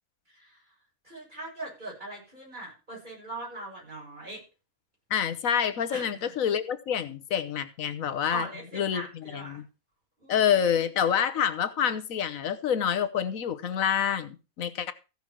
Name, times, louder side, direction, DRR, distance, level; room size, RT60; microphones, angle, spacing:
voice 1, 0.3-0.6 1.0-4.4 5.9-6.3 8.3-9.6 10.2-10.8, right 2 dB, 35° right, 7.3 m, -41 dB
voice 2, 5.1-8.5 8.7-9.0 9.3-9.6 10.3-14.9, left 8 dB, 85° left, 1.4 m, -27 dB
15.0 x 5.6 x 6.1 m
omnidirectional pair, 1.4 m